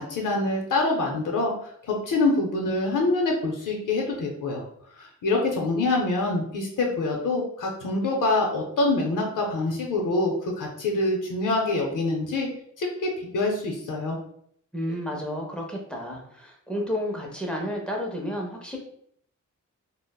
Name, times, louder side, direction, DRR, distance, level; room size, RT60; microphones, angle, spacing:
voice 1, 0.0-1.5 1.8-4.6 5.0-12.5 12.8-14.2, left 2 dB, 85° left, 0 dB, 0.6 m, -25 dB
voice 2, 14.7-18.8, equal, 5° left, -1 dB, 0.5 m, -31 dB
3.7 x 2.0 x 2.2 m, 0.66 s
wide cardioid pair, 180°, 31 cm